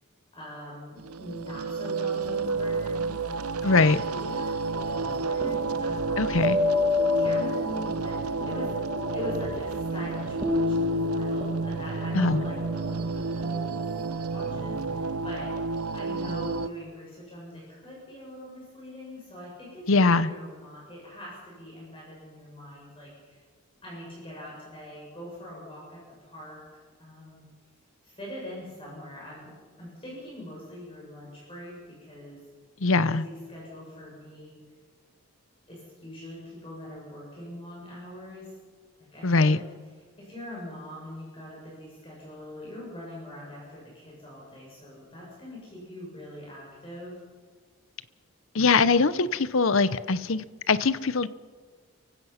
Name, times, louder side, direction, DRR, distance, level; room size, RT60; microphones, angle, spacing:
voice 1, 0.3-6.5 7.1-8.8 9.1-13.8 14.3-15.5 15.9-23.4 23.8-26.6 27.0-27.4 28.0-29.5 29.8-32.4 32.9-34.5 35.7-38.5 39.0-39.6 40.2-47.2, left 1 dB, 25° left, -5 dB, 7.0 m, -42 dB
sound 1, 1.0-16.7, right 4 dB, 85° right, 0.7 m, -31 dB
voice 2, 3.6-4.0 6.2-6.6 12.1-12.4 19.9-20.3 32.8-33.2 39.2-39.6 48.5-51.3, left 4 dB, 65° left, 16 dB, 0.8 m, -22 dB
sound 2, 4.7-15.1, left 3 dB, 20° right, 1.6 m, -30 dB
29.5 x 16.0 x 5.8 m, 1.5 s
head